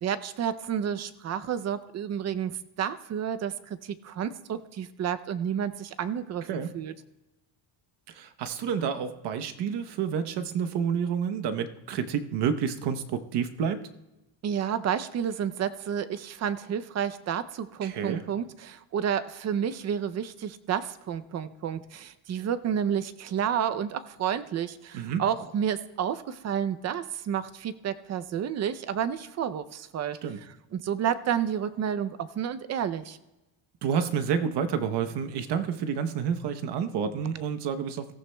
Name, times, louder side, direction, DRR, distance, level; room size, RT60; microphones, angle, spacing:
voice 1, 0.0-6.5 6.7-6.9 14.4-30.2 30.7-33.2, right 8 dB, 35° right, 12 dB, 0.5 m, -30 dB
voice 2, 8.1-13.8 17.8-18.2 24.9-25.2 30.2-30.4 33.8-38.1, right 7 dB, 60° right, 8 dB, 0.9 m, -29 dB
23.5 x 14.5 x 2.2 m, 1.0 s
cardioid pair, 165°, 46 cm